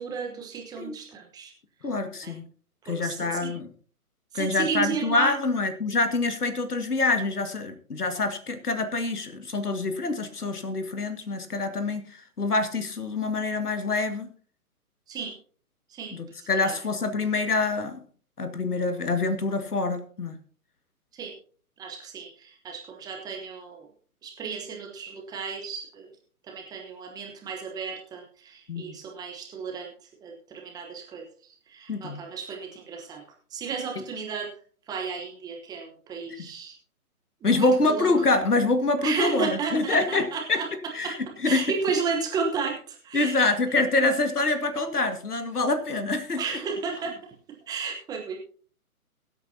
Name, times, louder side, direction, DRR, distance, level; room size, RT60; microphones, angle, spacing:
voice 1, 0.0-1.5 2.2-2.3 2.8-3.5 4.3-5.3 15.1-15.3 15.9-16.8 21.1-21.3 21.8-23.9 24.2-26.1 26.5-29.9 30.2-33.2 33.5-34.5 34.9-36.7 37.4-38.1 39.0-40.7 41.0-41.1 41.4-43.3 44.0-44.1 46.4-47.1 47.7-48.4, right 5 dB, 10° right, 1 dB, 1.0 m, -33 dB
voice 2, 1.8-2.4 2.9-3.7 4.3-14.3 16.1-18.0 18.4-20.4 28.7-29.0 31.9-32.2 36.4-36.5 37.4-40.6 40.9-41.7 43.1-46.4, left 3 dB, 85° left, 9 dB, 2.0 m, -26 dB
22.0 x 8.3 x 2.8 m, 0.43 s
figure-of-eight pair, 140°, 45 cm